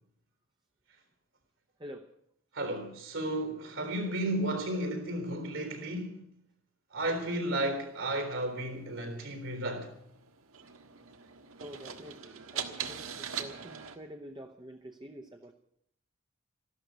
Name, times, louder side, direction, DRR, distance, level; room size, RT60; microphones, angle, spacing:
voice 1, 2.5-6.2 6.9-9.9, right 1 dB, 70° right, 3.8 m, -33 dB
sound 1, 7.2-14.0, right 7 dB, 90° right, 1.5 m, -43 dB
voice 2, 11.6-15.5, equal, 20° right, 0.8 m, -47 dB
14.0 x 12.5 x 8.1 m
head